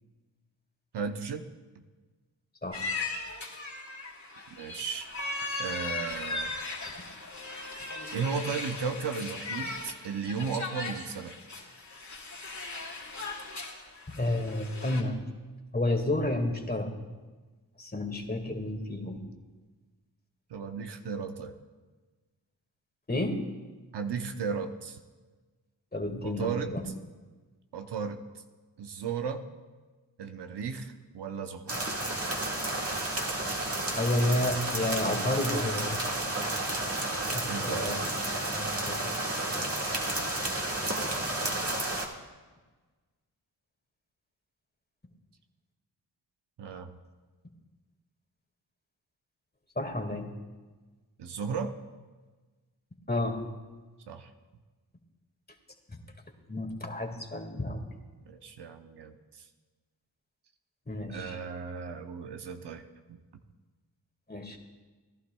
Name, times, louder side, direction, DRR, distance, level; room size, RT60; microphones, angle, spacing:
voice 1, 0.9-1.5 4.5-5.3 5.6-6.5 8.1-11.3 20.5-21.5 23.9-25.0 26.2-26.7 27.7-28.2 28.8-29.4 30.2-31.8 37.5-38.0 46.6-46.9 51.2-51.7 54.1-54.3 58.3-59.5 61.1-63.2, right 6 dB, 75° right, 6 dB, 0.9 m, -35 dB
sound 1, 2.7-15.0, left 3 dB, 45° left, 2.7 m, -38 dB
voice 2, 14.1-15.2 15.7-16.9 17.8-19.2 23.1-23.5 25.9-26.8 33.6-33.7 34.0-36.0 37.3-38.1 38.5-39.0 49.7-50.3 53.1-53.4 55.9-56.0 56.5-57.8 60.9-61.4 64.3-64.6, left 1 dB, 25° left, 4 dB, 1.9 m, -31 dB
sound 2, 31.7-42.1, right 2 dB, 35° right, 2.0 m, -31 dB
19.0 x 11.5 x 2.3 m, 1.3 s
supercardioid pair, 40°, 41 cm